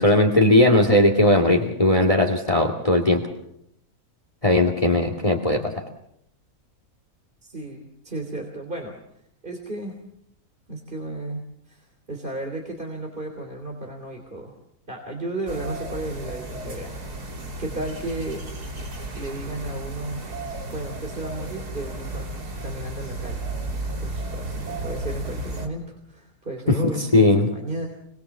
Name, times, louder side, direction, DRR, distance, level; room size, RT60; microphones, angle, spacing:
voice 1, 0.0-3.2 4.4-5.8 26.7-27.5, left 1 dB, 20° left, 4 dB, 2.3 m, -18 dB
voice 2, 7.4-9.0 9.4-10.0 10.7-14.6 14.9-16.9 17.6-18.4 19.2-20.2 20.7-22.3 22.6-23.5 24.0-27.9, right 2 dB, 30° right, 3 dB, 3.5 m, -34 dB
sound 1, 15.5-25.7, right 2 dB, 90° right, 3.8 m, -33 dB
28.0 x 22.5 x 7.3 m, 0.77 s
omnidirectional pair, 1.6 m